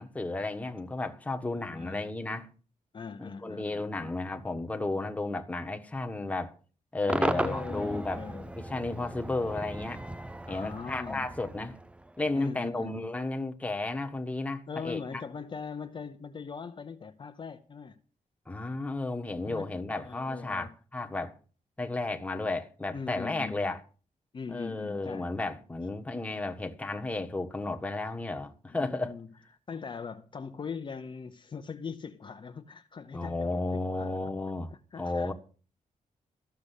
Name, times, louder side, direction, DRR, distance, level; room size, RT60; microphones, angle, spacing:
voice 1, 0.0-2.5 3.2-6.5 6.9-8.3 8.5-10.0 10.5-11.8 12.2-15.2 18.5-21.4 21.8-23.8 24.5-29.2 33.1-35.3, left 2 dB, 10° left, 1.3 m, -33 dB
voice 2, 1.7-2.1 2.9-4.1 7.2-8.5 10.5-11.3 12.3-13.0 14.7-18.0 19.4-19.7 20.0-20.7 22.9-23.8 24.3-25.3 28.7-29.3 29.7-34.2 34.9-35.3, left 5 dB, 35° left, 0.8 m, -41 dB
Cheering / Crowd / Fireworks, 7.1-12.4, right 1 dB, 10° right, 0.5 m, -36 dB
14.0 x 6.8 x 8.3 m
wide cardioid pair, 145°, 14 cm